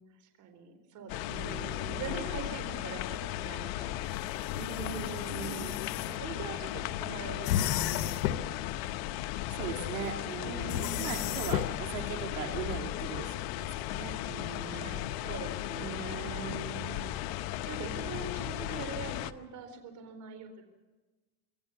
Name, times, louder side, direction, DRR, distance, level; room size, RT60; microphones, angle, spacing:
voice 1, 0.2-4.1 5.5-8.9 10.4-11.3 14.6-16.5 17.7-20.7, right 5 dB, 40° right, 7 dB, 4.2 m, -44 dB
sound 1, 1.1-19.3, left 14 dB, 50° left, 1.0 m, -36 dB
voice 2, 1.3-2.5 4.5-5.8 9.5-15.1 15.8-17.1 18.0-18.5, right 8 dB, 70° right, 2 dB, 3.3 m, -40 dB
sound 2, 4.0-6.1 7.4-8.5 10.7-11.8, left 12 dB, 75° left, 1.2 m, -33 dB
26.0 x 15.5 x 7.0 m, 1.2 s
supercardioid pair, 140°, 47 cm